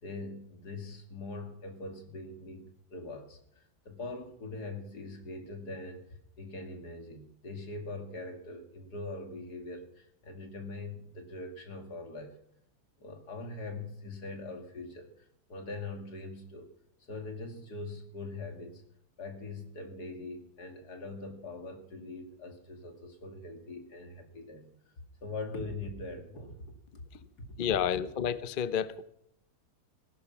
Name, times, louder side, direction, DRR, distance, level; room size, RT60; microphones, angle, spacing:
voice 1, 0.0-6.0 6.4-12.4 13.0-16.7 17.0-18.8 19.2-24.7 25.2-26.6 27.4-27.5, left 2 dB, 80° left, 5 dB, 3.0 m, -42 dB
voice 2, 27.6-29.0, left 8 dB, 45° left, 14 dB, 0.7 m, -30 dB
16.5 x 12.0 x 6.1 m, 0.73 s
omnidirectional pair, 1.7 m